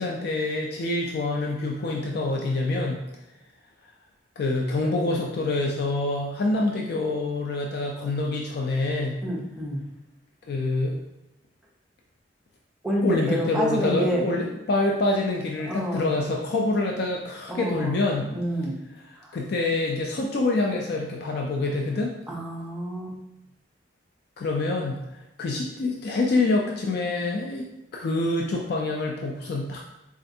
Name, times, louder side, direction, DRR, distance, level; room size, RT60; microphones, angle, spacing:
voice 1, 0.0-3.0 4.4-9.2 10.5-11.0 13.0-18.2 19.3-22.1 24.4-25.0 25.4-27.7 27.9-29.8, left 2 dB, 60° left, 0 dB, 0.4 m, -26 dB
voice 2, 9.2-9.8 12.8-14.2 15.6-16.1 17.5-18.0 18.2-18.8 19.2-19.4 22.3-23.2, equal, 5° right, -5 dB, 0.6 m, -28 dB
4.2 x 2.4 x 2.6 m, 0.90 s
head